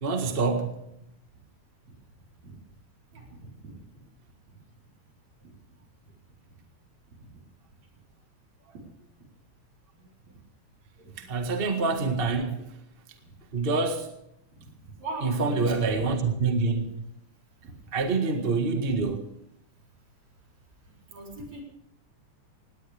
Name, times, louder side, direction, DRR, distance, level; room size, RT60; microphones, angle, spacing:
voice 1, 0.0-0.7 11.2-12.7 13.5-14.1 15.2-16.8 17.9-19.2, right 4 dB, 25° right, 1.3 m, -26 dB
voice 2, 3.1-3.8 8.7-8.8 10.0-10.1 11.0-11.3 13.2-13.3 14.6-16.0 18.0-18.1 21.1-21.6, right 3 dB, 60° right, 5.5 m, -41 dB
18.5 x 18.5 x 3.5 m
omnidirectional pair, 3.5 m